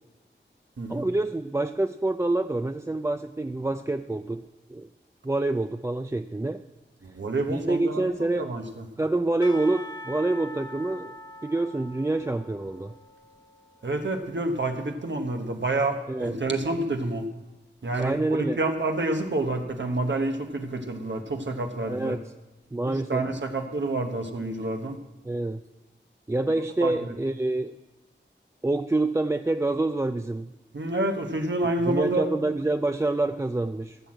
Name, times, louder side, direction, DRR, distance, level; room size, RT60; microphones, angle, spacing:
voice 1, 0.9-4.9 5.2-6.6 7.5-8.5 9.0-11.1 11.4-12.9 16.1-16.4 18.0-18.6 21.9-22.2 22.7-23.3 25.2-25.6 26.3-27.7 28.6-30.5 31.9-34.0, right 2 dB, 15° right, 8 dB, 0.4 m, -27 dB
voice 2, 7.0-8.1 8.4-8.8 13.8-17.3 17.8-22.2 22.9-25.0 26.8-27.1 30.7-32.3, right 2 dB, 70° right, 4 dB, 1.1 m, -28 dB
Percussion / Church bell, 9.4-14.5, left 1 dB, 20° left, 1.0 m, -43 dB
14.5 x 6.2 x 7.6 m, 1.1 s
wide cardioid pair, 65°, 20 cm